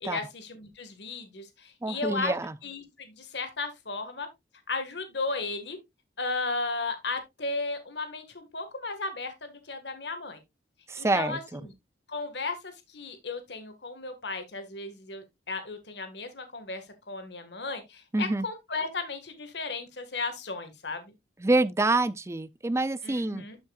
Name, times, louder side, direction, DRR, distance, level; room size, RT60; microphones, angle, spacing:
voice 1, 0.0-2.3 2.6-4.3 4.7-5.8 6.2-10.4 11.0-11.7 12.1-21.1 23.0-23.6, left 3 dB, 70° left, 1.8 m, -35 dB
voice 2, 1.8-2.6 10.9-11.6 18.1-18.5 21.4-23.5, right 2 dB, 15° right, 0.4 m, -27 dB
12.0 x 5.7 x 2.4 m
head